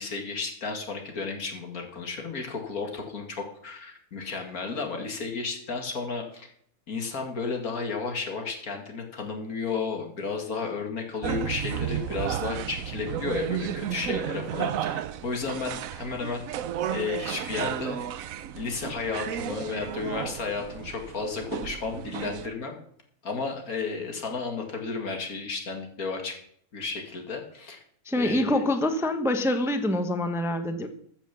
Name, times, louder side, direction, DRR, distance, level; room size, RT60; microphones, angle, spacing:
voice 1, 0.0-6.5 6.9-16.4 16.9-18.0 18.5-22.8 23.2-26.4 26.7-27.8 28.1-28.6, left 4 dB, 75° left, 3 dB, 2.5 m, -33 dB
sound 1, 11.2-22.5, right 10 dB, 70° right, 1.1 m, -33 dB
voice 2, 28.1-30.9, left 1 dB, ahead, 8 dB, 0.8 m, -25 dB
14.5 x 7.3 x 6.9 m, 0.64 s
omnidirectional pair, 1.5 m